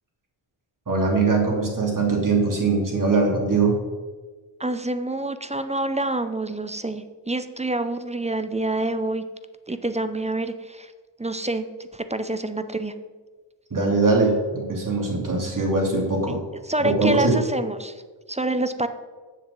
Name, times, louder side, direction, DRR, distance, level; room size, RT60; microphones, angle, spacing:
voice 1, 0.9-3.8 13.7-16.4 16.8-17.4, right 3 dB, 40° right, -1 dB, 2.9 m, -21 dB
voice 2, 4.6-9.2 9.7-10.9 11.2-12.9 16.3-16.4 16.6-18.0 18.3-18.9, right 2 dB, 15° right, 11 dB, 0.5 m, -27 dB
7.4 x 7.0 x 7.5 m, 1.4 s
wide cardioid pair, 95°, 49 cm